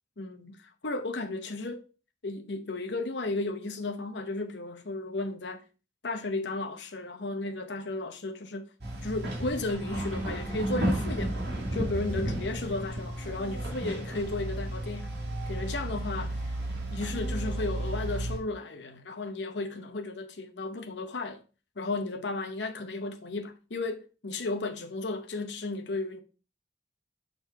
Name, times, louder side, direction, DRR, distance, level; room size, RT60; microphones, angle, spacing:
voice 1, 0.2-1.8 2.2-5.6 6.0-8.7 9.0-11.3 11.7-15.1 15.5-16.4 16.9-21.4 21.8-26.2, left 2 dB, 70° left, 0.8 m, -34 dB
sound 1, 8.8-18.4, right 1 dB, 60° right, 2.3 m, -33 dB
6.5 x 4.0 x 4.4 m
head